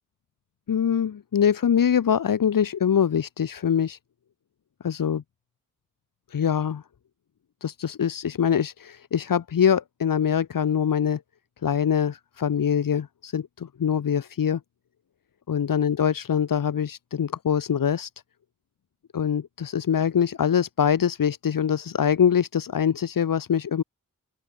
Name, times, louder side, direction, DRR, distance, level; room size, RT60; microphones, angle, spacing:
voice 1, 0.7-4.0 4.8-5.2 6.3-6.8 7.6-11.2 11.6-14.6 15.5-18.1 19.1-23.8, left 8 dB, 80° left, 0.9 m, -23 dB
open air
wide cardioid pair, 55°, 33 cm